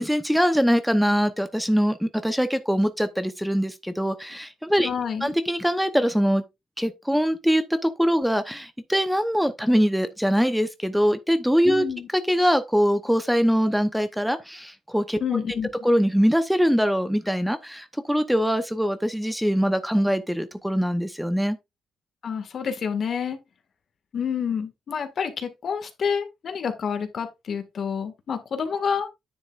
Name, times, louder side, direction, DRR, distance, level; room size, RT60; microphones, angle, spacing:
voice 1, 0.0-4.9 5.2-6.4 6.8-11.8 12.1-15.4 15.8-21.6, equal, ahead, 0.8 m, -23 dB
voice 2, 4.8-5.4 11.7-12.1 15.2-15.7 22.2-23.4 24.1-29.1, left 7 dB, 55° left, 1.8 m, -28 dB
9.8 x 7.3 x 2.5 m
cardioid pair, 90°, 0 cm